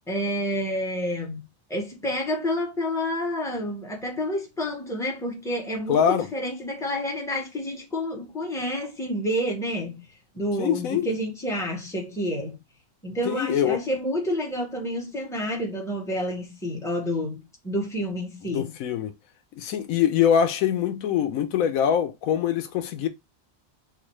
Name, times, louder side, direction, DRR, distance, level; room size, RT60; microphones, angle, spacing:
voice 1, 0.1-1.4 1.7-10.0 10.3-12.6 13.0-17.4 17.6-18.7, equal, ahead, 0.9 m, -29 dB
voice 2, 5.9-6.3 10.6-11.1 13.3-13.8 18.5-19.1 19.6-23.1, left 9 dB, 80° left, 1.0 m, -23 dB
4.5 x 2.1 x 3.1 m
omnidirectional pair, 1.4 m